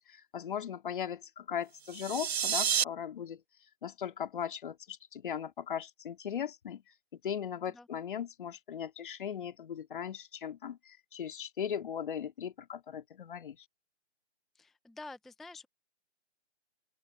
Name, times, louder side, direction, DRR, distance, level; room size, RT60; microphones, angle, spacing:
voice 1, 0.0-3.4 3.8-6.8 7.1-13.6, left 8 dB, 45° left, 3.0 m, -38 dB
sound 1, 1.8-2.8, right 8 dB, 65° right, 0.5 m, -30 dB
voice 2, 14.5-15.7, left 2 dB, ahead, 0.7 m, -48 dB
open air
figure-of-eight pair, 140°, 34 cm